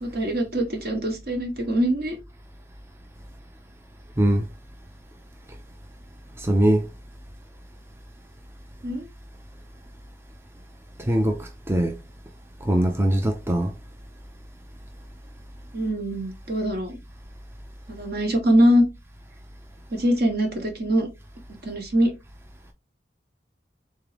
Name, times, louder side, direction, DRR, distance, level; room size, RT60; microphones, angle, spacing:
voice 1, 0.0-2.2 8.8-9.1 15.7-17.0 17.9-18.8 19.9-21.1 21.6-22.1, equal, 55° right, 1.3 m, -23 dB
voice 2, 6.4-6.8 11.1-11.9 12.6-13.7, right 1 dB, 15° right, 0.4 m, -21 dB
3.7 x 3.5 x 3.3 m
head